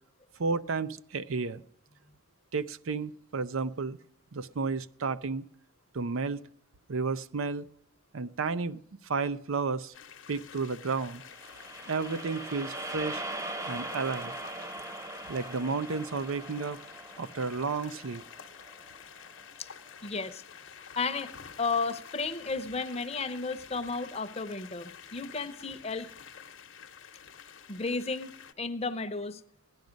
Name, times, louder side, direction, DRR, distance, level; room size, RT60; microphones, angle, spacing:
voice 1, 0.4-1.6 2.5-4.0 4.3-5.5 5.9-6.4 6.9-7.7 8.1-9.9 10.3-11.2 11.9-13.2 13.6-14.3 15.3-16.8 17.2-18.2, right 4 dB, 80° right, 15 dB, 0.6 m, -32 dB
sound 1, 9.9-28.5, left 7 dB, 65° left, 0.9 m, -49 dB
sound 2, 11.2-19.5, right 2 dB, 15° right, 0.6 m, -41 dB
voice 2, 20.0-20.4 21.0-21.3 21.6-26.1 27.7-29.4, left 4 dB, 30° left, 10 dB, 0.7 m, -33 dB
16.0 x 10.5 x 5.2 m, 0.67 s
head